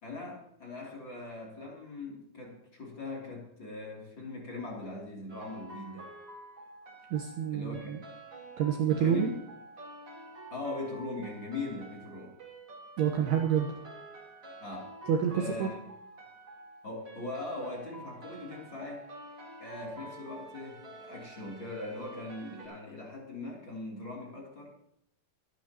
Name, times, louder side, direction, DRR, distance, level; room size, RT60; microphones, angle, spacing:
voice 1, 0.0-6.1 7.5-8.0 9.0-9.4 10.5-12.4 14.6-15.0 15.3-15.8 16.8-19.1 19.6-24.7, left 2 dB, 30° left, -2 dB, 3.0 m, -40 dB
sound 1, 5.3-22.7, right 2 dB, 25° right, 4.6 m, -49 dB
voice 2, 7.1-8.0 8.6-9.3 13.0-13.7 15.1-15.7, right 8 dB, 70° right, 2 dB, 2.8 m, -28 dB
25.5 x 10.0 x 3.0 m, 0.75 s
omnidirectional pair, 5.3 m